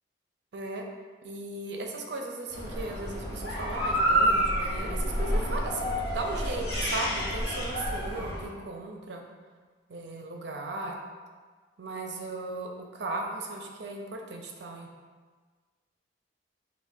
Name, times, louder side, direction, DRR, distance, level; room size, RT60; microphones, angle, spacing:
voice 1, 0.5-0.8 1.2-9.2 9.9-11.0 11.8-14.9, right 2 dB, 70° right, 1 dB, 0.5 m, -36 dB
sound 1, 2.5-8.4, equal, 70° left, 1.1 m, -29 dB
6.0 x 2.2 x 2.6 m, 1.5 s
head